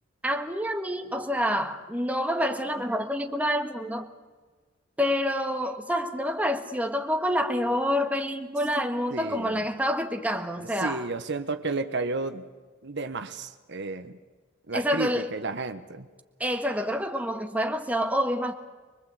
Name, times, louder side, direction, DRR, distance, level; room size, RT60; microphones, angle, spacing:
voice 1, 0.2-4.1 5.0-11.1 14.7-15.3 16.4-18.5, equal, 10° right, 1.6 m, -27 dB
voice 2, 9.1-9.6 10.6-12.5 12.8-14.2 14.7-16.1, right 3 dB, 65° right, 1.3 m, -32 dB
24.0 x 23.5 x 8.2 m
head